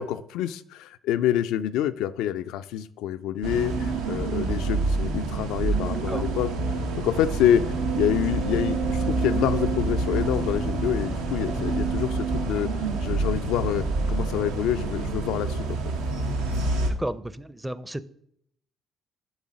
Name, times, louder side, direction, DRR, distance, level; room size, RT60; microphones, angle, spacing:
voice 1, 0.0-6.5 7.0-7.6 8.0-12.7 13.0-15.8, left 11 dB, 80° left, 11 dB, 0.3 m, -27 dB
sound 1, 3.4-16.9, right 3 dB, 85° right, 0.9 m, -27 dB
sound 2, 7.1-12.4, right 2 dB, 70° right, 1.6 m, -38 dB
voice 2, 17.0-18.1, right 1 dB, 10° right, 15 dB, 0.5 m, -32 dB
7.2 x 3.8 x 6.3 m, 0.71 s
hypercardioid pair, 60°, 0 cm